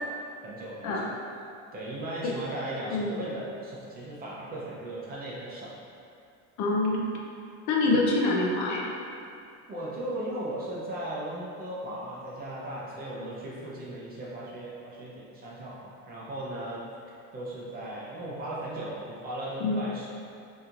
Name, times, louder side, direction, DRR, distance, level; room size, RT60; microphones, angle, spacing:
voice 1, 0.4-1.1 1.7-5.7 9.7-16.8 17.3-20.1, right 1 dB, 25° right, -6 dB, 0.6 m, -37 dB
voice 2, 6.6-7.1 7.7-8.9 19.6-19.9, left 2 dB, 55° left, -2 dB, 0.6 m, -25 dB
4.1 x 2.8 x 2.5 m, 2.5 s
cardioid pair, 155°, 34 cm